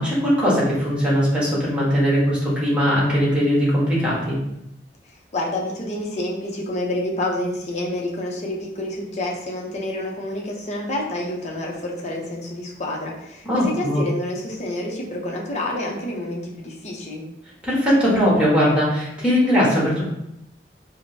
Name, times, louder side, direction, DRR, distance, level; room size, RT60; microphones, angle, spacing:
voice 1, 0.0-4.4 13.4-14.0 17.6-20.0, equal, 5° right, -6 dB, 1.3 m, -20 dB
voice 2, 5.3-17.2, left 1 dB, 40° left, -2 dB, 0.7 m, -28 dB
4.9 x 2.1 x 2.7 m, 0.83 s
head